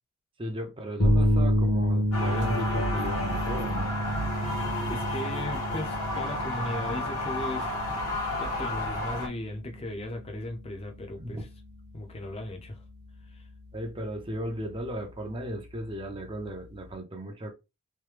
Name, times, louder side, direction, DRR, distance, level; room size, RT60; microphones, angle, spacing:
voice 1, 0.4-3.9 11.2-11.4 13.7-17.5, right 1 dB, 25° right, 0.6 m, -35 dB
sound 1, 1.0-16.9, equal, 50° left, 1.0 m, -31 dB
sound 2, 2.1-9.3, left 1 dB, 70° left, 1.5 m, -31 dB
voice 2, 4.8-7.7 8.4-11.5 11.9-12.8 13.3-13.4, left 2 dB, 25° left, 0.6 m, -37 dB
3.1 x 2.2 x 3.2 m
head